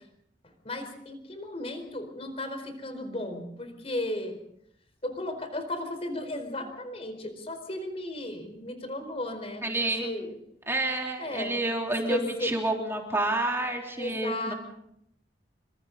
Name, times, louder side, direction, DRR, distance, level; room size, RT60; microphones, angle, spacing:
voice 1, 0.6-4.4 5.0-10.4 11.2-11.6 12.1-12.5 14.0-14.5, left 1 dB, 35° left, 7 dB, 4.5 m, -35 dB
voice 2, 9.6-10.1 10.7-14.5, right 2 dB, 15° right, 0 dB, 3.5 m, -29 dB
28.0 x 26.0 x 4.1 m, 0.75 s
head